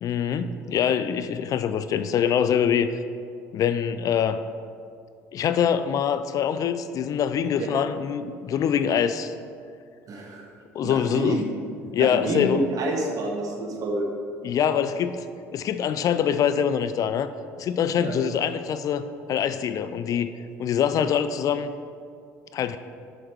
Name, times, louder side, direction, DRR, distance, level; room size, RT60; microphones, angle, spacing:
voice 1, 0.0-2.9 3.5-4.4 5.3-9.3 10.7-11.4 11.9-12.6 14.4-15.3 15.5-17.3 17.6-20.3 20.6-21.7 22.5-22.8, left 8 dB, 50° left, 11 dB, 0.4 m, -24 dB
voice 2, 10.1-10.5 10.8-11.5 12.0-14.1 18.0-18.2, right 2 dB, 50° right, 0 dB, 1.6 m, -28 dB
7.4 x 5.3 x 4.5 m, 2.3 s
hypercardioid pair, 65°, 8 cm